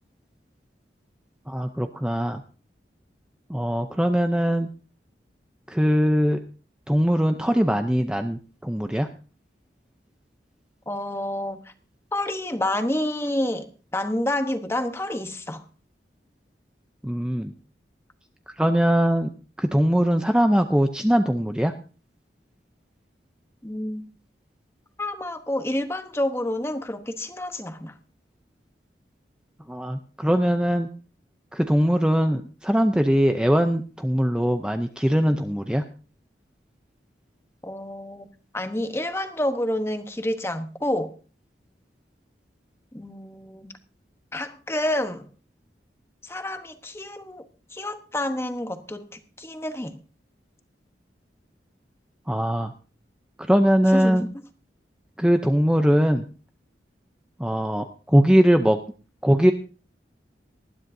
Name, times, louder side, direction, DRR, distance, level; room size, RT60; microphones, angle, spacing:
voice 1, 1.5-2.4 3.5-4.7 5.7-6.4 6.9-9.1 17.0-17.5 18.6-19.3 19.6-21.7 29.7-30.9 31.5-35.8 52.3-52.7 53.5-54.3 55.2-56.2 57.4-58.8 59.2-59.5, equal, 5° right, 0.6 m, -21 dB
voice 2, 10.9-11.7 12.1-15.6 23.6-24.1 25.0-28.0 37.6-41.1 42.9-43.7 44.3-45.3 46.2-49.1 49.4-50.0 53.9-54.3, left 1 dB, 15° left, 1.0 m, -29 dB
19.5 x 13.0 x 2.7 m
head